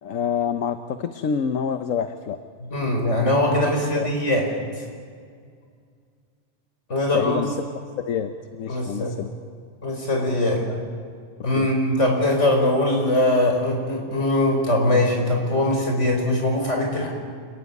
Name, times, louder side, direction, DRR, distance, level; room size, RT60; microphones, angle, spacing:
voice 1, 0.0-2.4 3.6-4.1 7.1-7.6 8.0-9.3 11.6-11.7, left 7 dB, 80° left, 9 dB, 1.3 m, -27 dB
voice 2, 2.6-4.5 6.9-7.4 8.7-9.1 9.8-10.8 11.4-17.1, left 1 dB, 65° left, 1 dB, 5.2 m, -21 dB
28.5 x 15.0 x 9.5 m, 2.1 s
omnidirectional pair, 1.3 m